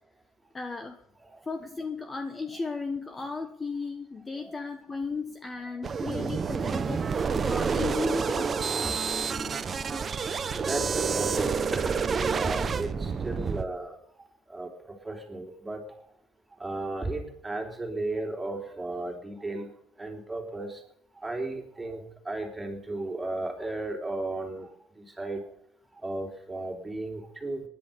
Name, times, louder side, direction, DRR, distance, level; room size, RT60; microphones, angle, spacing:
voice 1, 0.5-1.0 1.4-8.6, left 4 dB, 20° left, 7 dB, 1.2 m, -35 dB
sound 1, 5.8-13.6, right 5 dB, 30° right, 1.0 m, -29 dB
voice 2, 8.8-10.1 10.4-16.0 16.5-19.7 20.0-20.8 21.1-25.4 25.9-27.6, right 2 dB, 10° right, 1 dB, 3.6 m, -35 dB
19.5 x 11.0 x 5.3 m, 0.73 s
cardioid pair, 110°, 0 cm